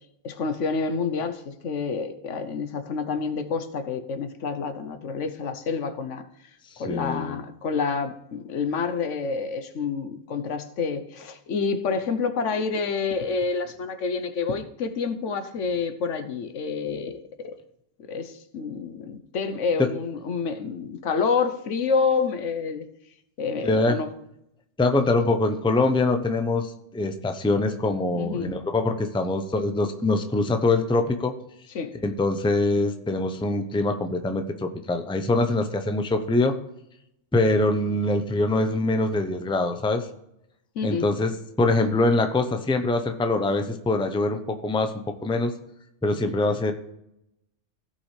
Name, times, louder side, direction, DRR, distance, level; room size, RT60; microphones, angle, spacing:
voice 1, 0.2-6.2 6.8-17.5 18.1-22.9 23.4-24.1 28.2-28.6 31.7-31.9 40.8-41.0, left 5 dB, 75° left, 1.2 m, -28 dB
voice 2, 6.8-7.4 19.8-19.9 23.6-24.0 24.8-31.3 32.0-36.5 37.3-40.1 40.8-44.9 45.2-45.5 46.0-46.7, left 2 dB, 5° left, 0.6 m, -24 dB
16.5 x 5.7 x 3.3 m
omnidirectional pair, 1.3 m